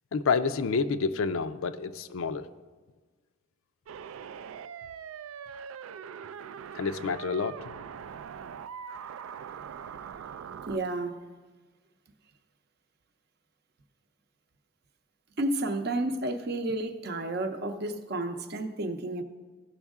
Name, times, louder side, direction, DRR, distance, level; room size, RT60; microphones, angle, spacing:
voice 1, 0.1-2.5 6.7-7.6, left 5 dB, 80° left, 11 dB, 0.5 m, -28 dB
sound 1, 3.9-10.8, right 7 dB, 85° right, 0.3 m, -42 dB
voice 2, 10.7-11.2 15.4-19.2, right 2 dB, 50° right, 7 dB, 0.6 m, -31 dB
15.5 x 6.2 x 3.6 m, 1.3 s
head